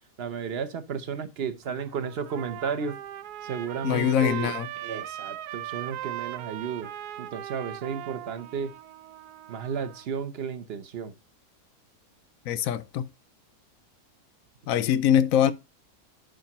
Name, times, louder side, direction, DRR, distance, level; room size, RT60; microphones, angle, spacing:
voice 1, 0.2-3.0 3.4-6.9 7.2-8.7 9.5-11.1, right 6 dB, 50° right, 0.9 m, -33 dB
Trumpet, 1.6-10.1, right 13 dB, 75° right, 1.1 m, -39 dB
voice 2, 3.8-4.7 12.5-13.1 14.7-15.5, left 10 dB, 70° left, 0.9 m, -23 dB
10.5 x 4.9 x 2.9 m
omnidirectional pair, 1.7 m